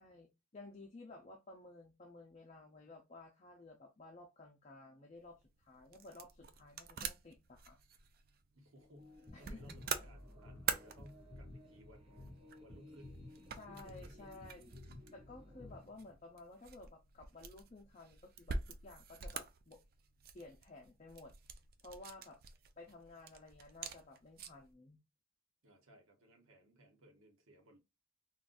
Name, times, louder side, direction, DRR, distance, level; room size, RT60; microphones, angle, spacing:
voice 1, 0.0-7.8 9.3-9.8 13.5-14.6 15.1-19.8 20.3-21.3 21.8-22.4 22.8-25.0, left 2 dB, 30° left, 0.5 m, -55 dB
sound 1, 5.2-24.7, right 6 dB, 45° right, 0.4 m, -47 dB
voice 2, 8.5-13.3 13.7-14.4 25.6-27.8, equal, 85° right, 1.1 m, -61 dB
sound 2, 8.7-15.8, left 1 dB, 25° right, 0.7 m, -60 dB
sound 3, 9.3-16.1, left 1 dB, 10° left, 0.9 m, -56 dB
3.8 x 2.3 x 2.5 m
head